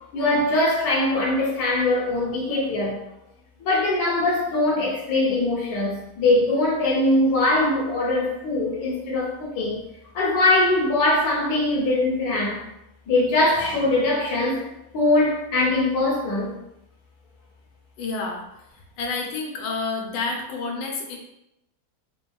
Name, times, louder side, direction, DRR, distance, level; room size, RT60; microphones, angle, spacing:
voice 1, 0.1-3.0 3.6-9.8 10.1-12.6 13.1-14.7 14.9-16.5, left 2 dB, 65° left, 1.2 m, -22 dB
voice 2, 18.0-18.4 19.0-21.2, left 4 dB, 85° left, 1.3 m, -29 dB
3.4 x 2.2 x 2.2 m
omnidirectional pair, 1.9 m